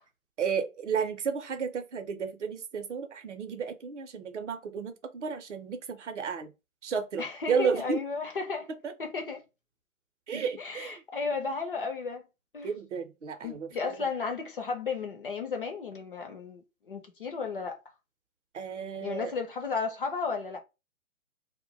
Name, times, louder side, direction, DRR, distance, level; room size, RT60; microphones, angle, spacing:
voice 1, 0.4-6.5 6.8-8.0 8.8-8.9 10.3-11.0 12.6-14.1 18.5-19.3, right 6 dB, 55° right, 0.6 m, -33 dB
voice 2, 7.2-8.7 9.0-9.4 10.6-12.2 12.5-12.7 13.4-17.8 19.0-20.6, left 4 dB, 40° left, 0.5 m, -34 dB
2.1 x 2.1 x 3.7 m
figure-of-eight pair, 135°, 42 cm